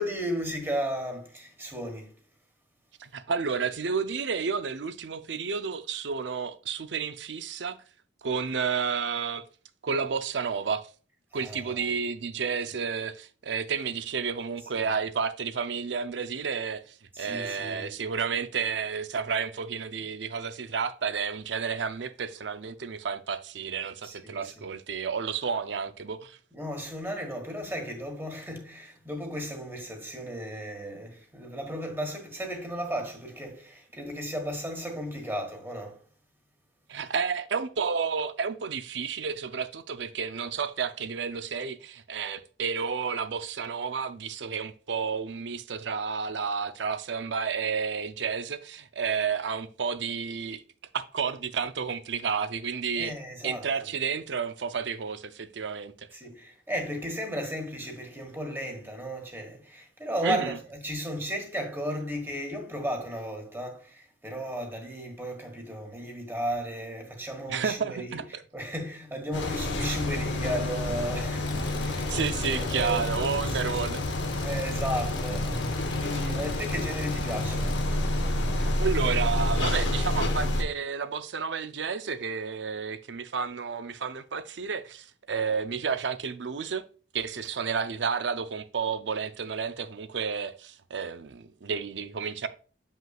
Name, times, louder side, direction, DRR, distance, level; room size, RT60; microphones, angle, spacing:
voice 1, 0.0-2.2 11.3-11.9 12.7-12.8 14.7-14.9 17.1-17.9 24.0-24.7 26.5-36.0 53.0-53.9 56.1-68.2 68.5-73.0 73.5-73.8 74.4-75.6 76.0-77.9, equal, 10° right, 1.3 m, -35 dB
voice 2, 3.0-7.8 8.2-9.4 9.8-10.9 11.3-26.4 36.9-50.6 50.9-53.1 53.4-56.1 60.2-60.6 67.5-68.4 69.9-70.0 71.5-74.0 78.6-86.8 87.1-92.5, right 6 dB, 70° right, 0.6 m, -31 dB
sound 1, 69.3-80.6, left 1 dB, 90° left, 1.2 m, -29 dB
Engine, 71.4-77.8, left 3 dB, 25° left, 0.6 m, -42 dB
7.6 x 5.5 x 2.4 m
head